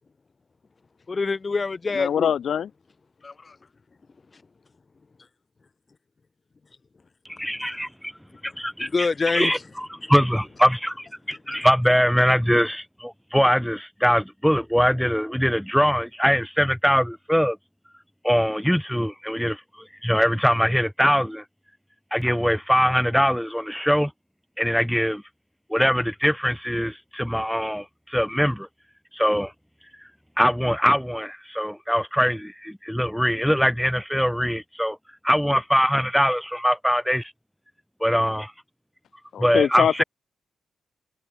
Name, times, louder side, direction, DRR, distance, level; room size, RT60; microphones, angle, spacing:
voice 1, 1.1-2.3 3.2-3.6 8.4-8.5 8.8-9.5 10.0-10.1 11.5-11.7, left 4 dB, 40° left, 7.5 m, -26 dB
voice 2, 1.9-2.7 39.3-40.0, left 8 dB, 70° left, 5.4 m, -23 dB
voice 3, 7.4-8.1 8.4-17.6 18.2-19.6 20.0-21.4 22.1-24.1 24.6-25.2 25.7-28.7 29.1-29.5 30.4-35.0 35.2-37.3 38.0-38.5 39.4-40.0, equal, ahead, 5.0 m, -22 dB
supercardioid pair, 50°, 0 cm